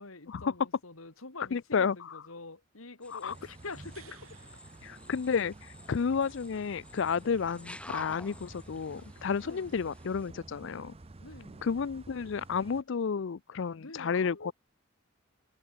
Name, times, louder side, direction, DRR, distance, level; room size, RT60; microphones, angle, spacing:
voice 1, 0.0-4.4 9.4-9.9 11.2-11.7 13.8-14.5, left 3 dB, 80° left, 2.7 m, -46 dB
voice 2, 1.5-1.9 3.1-3.3 4.8-10.9 11.6-14.5, left 6 dB, 60° left, 0.4 m, -31 dB
sound 1, 3.0-10.3, left 1 dB, 5° left, 3.6 m, -51 dB
sound 2, 3.3-12.8, right 2 dB, 30° right, 0.7 m, -51 dB
sound 3, 3.6-5.9 9.2-9.3, right 9 dB, 85° right, 4.1 m, -60 dB
head